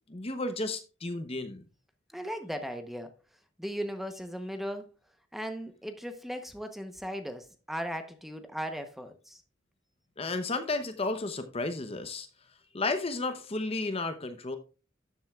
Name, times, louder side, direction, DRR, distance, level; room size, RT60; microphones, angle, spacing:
voice 1, 0.1-1.6 10.2-12.3 12.7-14.6, left 3 dB, 30° left, 0.8 m, -32 dB
voice 2, 2.1-3.1 3.6-4.9 5.3-9.4, equal, ahead, 0.9 m, -37 dB
12.5 x 7.5 x 2.4 m
head